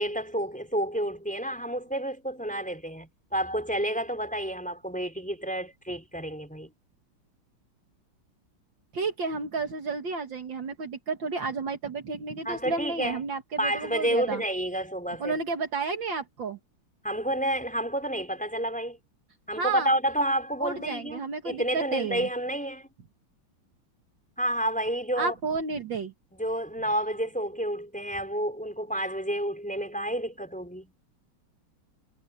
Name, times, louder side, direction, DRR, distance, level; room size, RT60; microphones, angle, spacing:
voice 1, 0.0-6.7 12.5-13.2 13.6-15.3 17.0-19.0 19.5-22.9 24.4-25.4 26.4-30.9, right 1 dB, 5° left, 5.1 m, -30 dB
voice 2, 8.9-14.4 15.2-16.6 19.6-20.0 20.6-22.3 25.2-26.1, right 4 dB, 60° right, 2.5 m, -31 dB
omnidirectional pair, 2.3 m